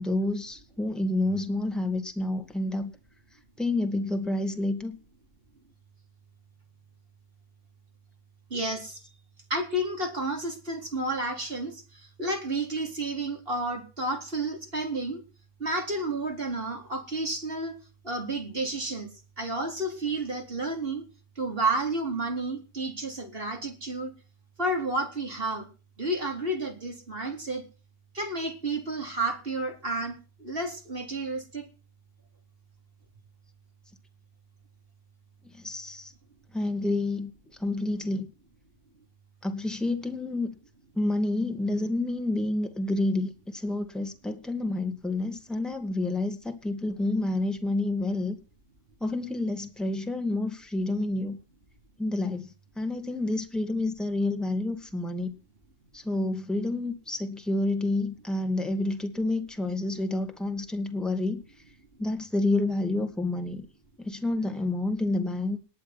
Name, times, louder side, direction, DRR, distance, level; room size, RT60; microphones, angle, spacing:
voice 1, 0.0-2.9 3.6-5.0 35.4-36.1 36.5-37.3 37.6-38.3 39.4-40.5 40.9-48.4 49.0-51.4 52.0-55.3 55.9-61.4 62.0-63.7 64.0-65.6, left 2 dB, ahead, 6 dB, 2.3 m, -29 dB
voice 2, 8.5-9.0 9.5-15.2 15.6-17.8 18.0-19.1 19.4-21.0 21.4-24.1 24.6-25.7 26.0-27.6 28.1-31.7, right 2 dB, 50° right, 3 dB, 4.2 m, -31 dB
18.5 x 10.5 x 6.1 m, 0.35 s
omnidirectional pair, 1.3 m